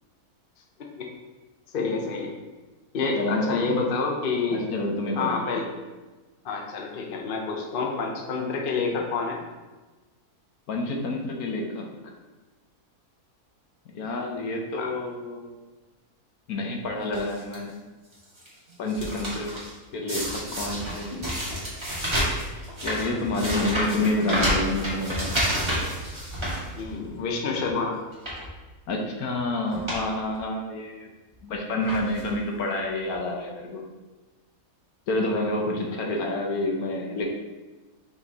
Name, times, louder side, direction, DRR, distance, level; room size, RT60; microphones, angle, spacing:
voice 1, 0.8-1.1 1.7-2.3 2.9-4.7 5.2-5.6 6.4-9.4 14.8-14.9 23.6-23.9 26.7-28.0, left 4 dB, 45° left, 1 dB, 0.8 m, -28 dB
voice 2, 3.2-3.8 4.5-5.6 10.7-11.9 13.9-15.5 16.5-17.8 18.8-19.5 19.9-21.1 22.8-25.3 28.9-31.1 31.4-33.8 35.1-37.3, left 2 dB, 75° left, 1 dB, 1.4 m, -28 dB
sound 1, 17.1-17.5 18.1-18.5 18.7-19.7 20.1-27.2 27.6-27.7 28.1-28.5 29.3-29.4 29.7-30.0 30.3-30.4 31.3-31.5 31.9-32.4 33.1-33.2 33.4-33.5, equal, 20° right, 1.9 m, -29 dB
5.6 x 4.4 x 4.1 m, 1.2 s
omnidirectional pair, 1.6 m